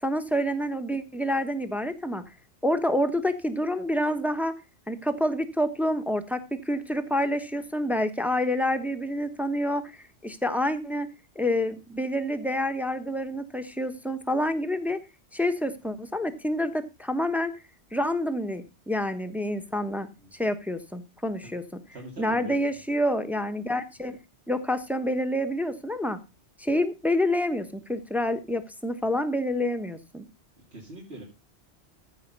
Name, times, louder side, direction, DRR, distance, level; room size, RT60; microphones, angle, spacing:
voice 1, 0.0-2.2 2.6-4.5 4.9-9.9 10.2-11.1 11.3-15.0 15.3-17.5 17.9-21.8 22.2-24.2 24.5-26.2 26.6-30.2, left 1 dB, ahead, 8 dB, 1.1 m, -28 dB
voice 2, 21.9-22.6 30.7-31.2, right 1 dB, 65° right, -1 dB, 2.5 m, -42 dB
15.0 x 5.5 x 5.3 m, 0.27 s
omnidirectional pair, 1.2 m